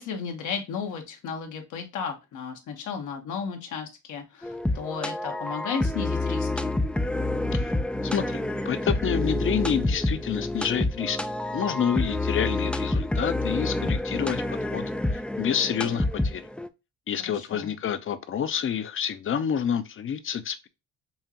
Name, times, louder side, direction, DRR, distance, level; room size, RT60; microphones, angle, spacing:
voice 1, 0.0-6.8 17.3-17.7, left 6 dB, 80° left, 1.2 m, -34 dB
sound 1, 4.4-16.7, left 2 dB, 5° left, 0.3 m, -28 dB
voice 2, 8.0-11.2 11.5-14.8 15.4-16.5 17.1-20.7, left 8 dB, 45° left, 0.6 m, -28 dB
5.5 x 2.4 x 2.8 m
cardioid pair, 90°, 30 cm